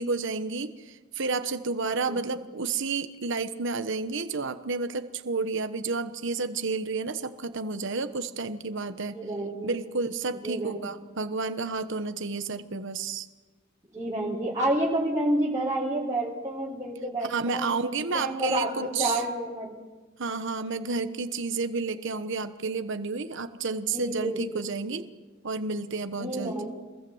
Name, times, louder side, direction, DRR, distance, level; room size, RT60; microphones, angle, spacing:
voice 1, 0.0-9.2 9.6-13.3 17.2-19.2 20.2-25.1 25.4-26.6, right 4 dB, 65° right, 9 dB, 1.2 m, -31 dB
voice 2, 9.1-9.7 10.3-11.0 13.9-19.8 23.9-24.6 25.0-25.1 26.1-26.8, right 1 dB, 15° right, -6 dB, 4.1 m, -30 dB
26.5 x 21.0 x 8.0 m, 1.2 s
head